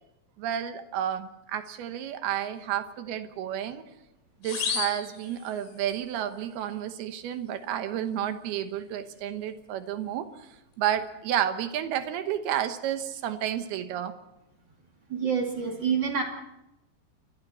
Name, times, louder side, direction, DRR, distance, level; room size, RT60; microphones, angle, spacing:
voice 1, 0.4-3.8 4.4-10.3 10.8-14.1, right 10 dB, 70° right, 9 dB, 2.7 m, -31 dB
sound 1, 4.4-6.0, left 6 dB, 80° left, 6.2 m, -33 dB
voice 2, 15.1-16.2, right 6 dB, 30° right, 2 dB, 2.2 m, -27 dB
28.5 x 23.5 x 4.3 m, 0.92 s
omnidirectional pair, 5.5 m